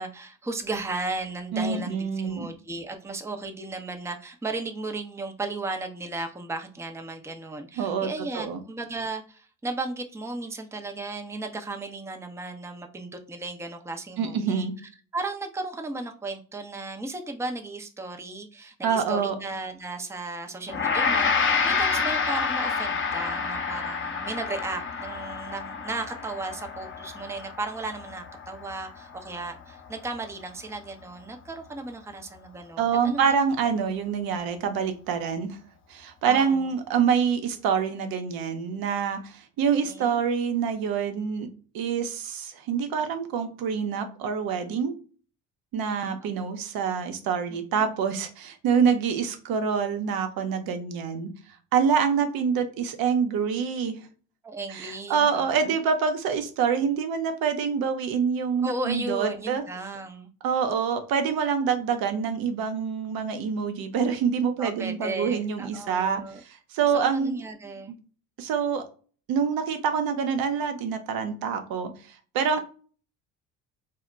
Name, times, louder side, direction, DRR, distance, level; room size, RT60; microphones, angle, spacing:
voice 1, 0.0-14.7 15.1-33.3 36.3-36.7 39.8-40.2 46.1-46.5 47.8-47.9 54.4-55.7 58.6-60.3 64.6-66.4 66.9-67.9, right 2 dB, 5° right, 5 dB, 0.5 m, -35 dB
voice 2, 1.5-2.5 7.8-8.1 8.3-8.6 14.2-14.7 18.8-19.4 32.8-35.6 35.9-41.5 41.7-44.9 45.7-51.3 51.7-54.0 54.7-59.6 60.4-67.4 68.4-68.8 69.3-71.9 72.3-72.6, right 6 dB, 65° right, 8 dB, 0.8 m, -26 dB
Gong, 20.7-30.1, left 5 dB, 30° left, 0.7 m, -28 dB
2.2 x 2.1 x 3.7 m, 0.39 s
supercardioid pair, 70°, 38 cm